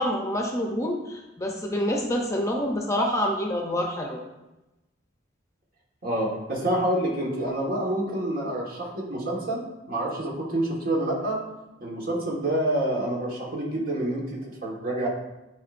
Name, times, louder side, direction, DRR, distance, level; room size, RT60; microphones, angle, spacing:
voice 1, 0.0-4.2, equal, 15° left, 1 dB, 0.8 m, -27 dB
voice 2, 6.0-11.4 11.8-15.1, right 1 dB, 50° right, -2 dB, 1.7 m, -27 dB
11.5 x 4.8 x 2.6 m, 1.0 s
head